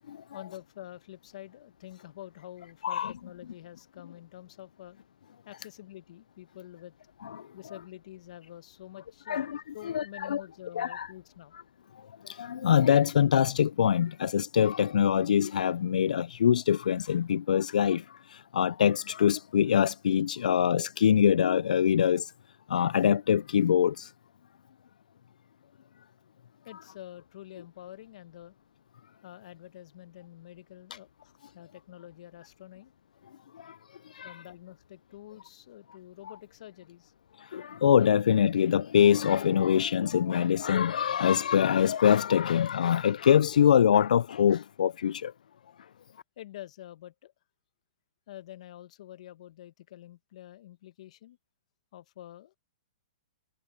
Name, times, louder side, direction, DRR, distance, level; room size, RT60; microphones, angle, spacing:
voice 1, 0.3-5.0 5.4-7.0 7.5-11.5 26.6-28.6 29.2-32.9 34.2-37.5 46.4-47.3 48.3-51.4 51.9-52.5, left 13 dB, 55° left, 1.1 m, -47 dB
voice 2, 9.3-10.4 10.8-11.1 12.0-22.3 22.7-24.1 33.5-33.8 34.0-34.4 37.4-45.3, left 9 dB, 75° left, 0.4 m, -24 dB
hypercardioid pair, 145°, 4 cm